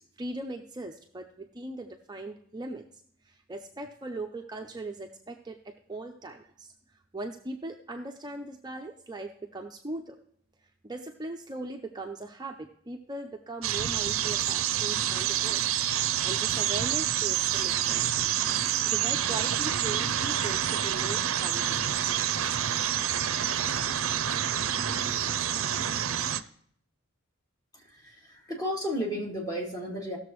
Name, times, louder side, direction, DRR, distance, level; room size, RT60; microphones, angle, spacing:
voice 1, 0.0-2.8 3.2-10.2 10.8-18.1 18.8-22.0, right 2 dB, 20° right, 3 dB, 0.6 m, -39 dB
sound 1, 13.6-26.4, right 10 dB, 70° right, 0.5 m, -28 dB
voice 2, 27.7-30.2, equal, 20° left, -3 dB, 2.3 m, -33 dB
17.5 x 6.8 x 3.1 m, 0.64 s
head